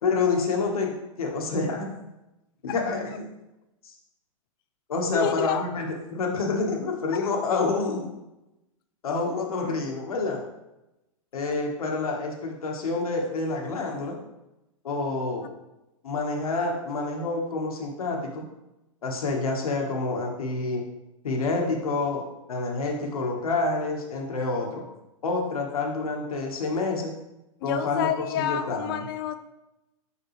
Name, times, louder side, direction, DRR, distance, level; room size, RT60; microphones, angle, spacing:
voice 1, 0.0-0.9 1.2-1.9 2.6-3.2 3.8-3.9 4.9-5.8 6.1-8.1 9.0-10.4 11.3-14.2 14.8-15.4 16.0-18.4 19.0-20.8 21.2-22.2 22.5-24.8 25.2-27.1 27.6-29.0, left 3 dB, 85° left, 1 dB, 1.5 m, -28 dB
voice 2, 5.1-5.6 7.2-7.3 27.6-29.4, left 9 dB, 40° left, 9 dB, 0.5 m, -28 dB
5.6 x 5.4 x 3.2 m, 0.94 s
hypercardioid pair, 150°, 18 cm